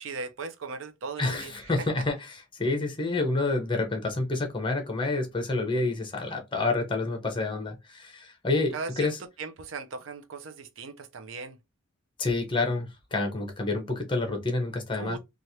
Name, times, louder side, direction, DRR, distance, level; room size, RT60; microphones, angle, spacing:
voice 1, 0.0-1.6 8.7-9.1 9.4-11.6 14.9-15.2, right 4 dB, 90° right, 0.5 m, -38 dB
voice 2, 1.2-9.2 12.2-15.2, left 3 dB, 25° left, 0.8 m, -28 dB
3.1 x 2.4 x 2.7 m
head